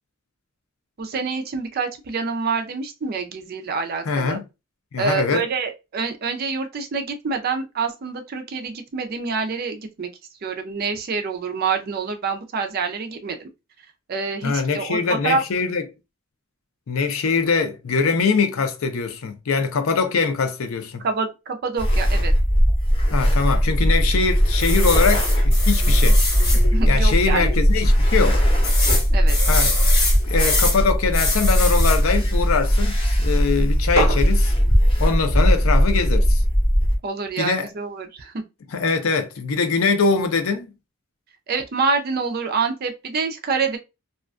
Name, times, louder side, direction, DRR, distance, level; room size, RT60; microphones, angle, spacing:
voice 1, 1.0-4.4 5.0-10.1 10.4-13.5 14.1-15.4 21.0-22.3 26.5-27.5 29.1-29.4 37.0-38.4 41.5-43.8, right 4 dB, 45° right, 0.4 m, -26 dB
voice 2, 4.0-4.4 4.9-5.4 14.4-15.8 16.9-21.0 23.1-26.2 26.9-28.4 29.5-29.8 30.3-34.5 35.0-36.4 37.4-37.7 38.7-40.7, left 5 dB, 75° left, 0.5 m, -22 dB
sound 1, 21.8-37.0, equal, 25° left, 0.7 m, -18 dB
sound 2, 24.6-26.6 27.2-27.3 27.5-27.6 28.6-30.8 31.1-32.0 34.0-34.2, left 2 dB, 50° left, 1.1 m, -24 dB
2.4 x 2.2 x 2.4 m
head